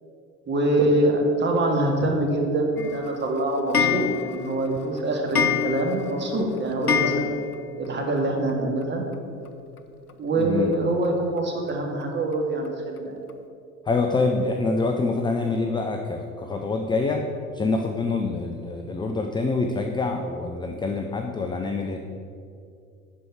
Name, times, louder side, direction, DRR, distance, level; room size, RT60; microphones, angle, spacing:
voice 1, 0.5-7.3 7.8-9.0 10.2-13.2, right 1 dB, 25° right, 1 dB, 2.0 m, -24 dB
Clock, 2.8-7.9 8.2-8.3 8.5-8.6 8.8-8.9 10.1-10.2 10.7-10.8 11.4-11.5 12.0-12.1 12.7-12.8 13.3-13.4, left 7 dB, 90° left, 0.7 m, -27 dB
voice 2, 10.4-10.7 13.9-17.2 17.5-22.0, left 3 dB, 10° left, 4 dB, 0.5 m, -26 dB
11.5 x 4.7 x 7.2 m, 2.4 s
figure-of-eight pair, 75°, 44 cm